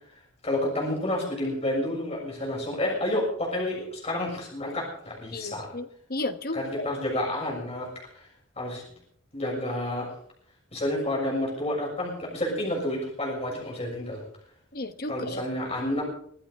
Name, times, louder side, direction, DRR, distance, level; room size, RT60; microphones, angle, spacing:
voice 1, 0.4-5.7 6.5-8.3 8.6-8.8 9.3-10.1 10.7-14.2 15.1-16.0, left 1 dB, 30° left, -2 dB, 6.7 m, -30 dB
voice 2, 5.3-6.9 14.7-15.4, left 2 dB, 50° left, 8 dB, 1.2 m, -34 dB
24.5 x 13.5 x 3.6 m, 0.63 s
head